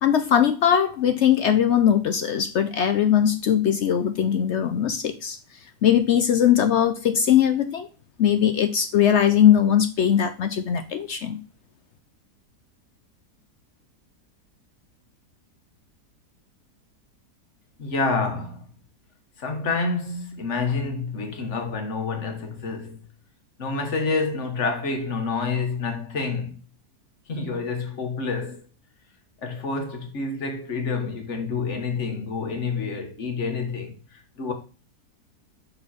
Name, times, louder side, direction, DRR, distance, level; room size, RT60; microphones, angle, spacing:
voice 1, 0.0-5.4 5.8-7.9 8.2-11.4, left 9 dB, 70° left, 0.6 m, -20 dB
voice 2, 17.8-18.7 19.4-23.0 23.6-26.6 27.3-28.6 29.4-34.5, left 4 dB, 50° left, 1.6 m, -28 dB
6.2 x 5.3 x 4.2 m
omnidirectional pair, 1.7 m